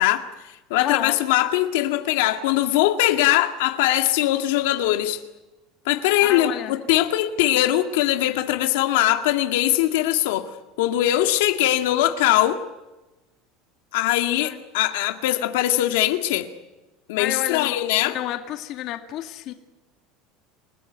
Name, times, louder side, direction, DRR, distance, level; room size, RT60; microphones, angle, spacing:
voice 1, 0.0-5.2 5.9-10.5 10.8-12.6 13.9-16.5 17.1-18.2, left 14 dB, 85° left, 2.0 m, -21 dB
voice 2, 0.8-1.2 6.2-6.8 14.4-14.6 17.2-19.5, left 12 dB, 40° left, 2.1 m, -30 dB
28.5 x 18.5 x 9.2 m
cardioid pair, 175°, 0 cm